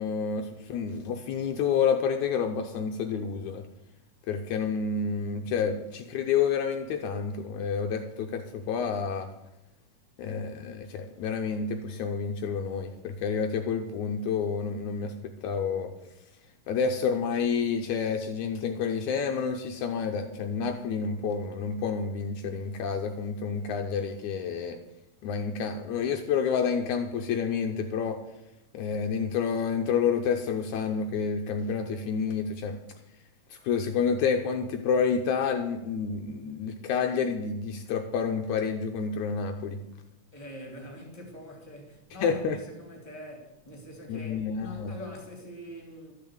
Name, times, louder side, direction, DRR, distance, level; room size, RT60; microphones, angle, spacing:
voice 1, 0.0-3.7 4.3-9.3 10.2-15.9 16.7-24.8 25.2-28.2 28.7-32.8 33.6-39.8 42.2-42.6 44.1-44.9, left 6 dB, 75° left, 2.1 m, -29 dB
voice 2, 40.3-46.1, left 1 dB, 15° left, 3.0 m, -44 dB
12.5 x 6.6 x 8.7 m
omnidirectional pair, 3.6 m